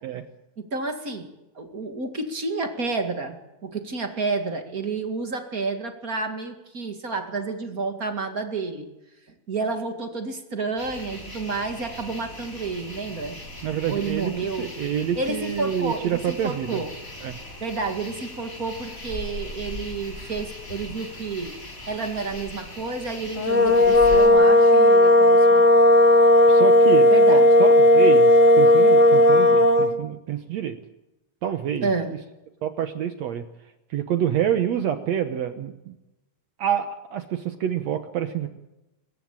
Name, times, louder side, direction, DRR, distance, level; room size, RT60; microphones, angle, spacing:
voice 1, 0.6-8.9 9.5-13.4 13.9-14.7 15.2-16.9 17.6-21.6 21.9-25.6 27.1-27.5 31.8-32.1, right 3 dB, 30° right, 6 dB, 2.0 m, -30 dB
sound 1, 10.8-24.3, left 2 dB, 25° left, 4.2 m, -39 dB
voice 2, 13.6-16.8 17.2-17.4 26.5-28.3 28.6-30.8 31.4-31.9 32.6-33.4 33.9-36.0 36.6-38.5, right 9 dB, 65° right, 9 dB, 1.9 m, -27 dB
sound 2, 23.4-30.0, left 1 dB, 55° left, 0.8 m, -15 dB
26.0 x 15.0 x 8.9 m, 0.98 s
omnidirectional pair, 3.9 m